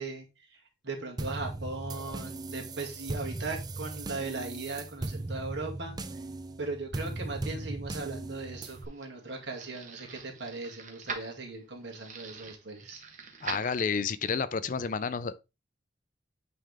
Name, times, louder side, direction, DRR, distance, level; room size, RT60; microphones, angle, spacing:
voice 1, 0.0-6.0 6.6-13.0, right 3 dB, 60° right, 2.1 m, -38 dB
sound 1, 1.2-8.9, right 2 dB, 20° right, 0.4 m, -38 dB
sound 2, 8.3-14.2, right 5 dB, 40° right, 1.2 m, -44 dB
voice 2, 13.4-15.4, left 5 dB, 45° left, 0.4 m, -30 dB
9.0 x 3.4 x 3.4 m
head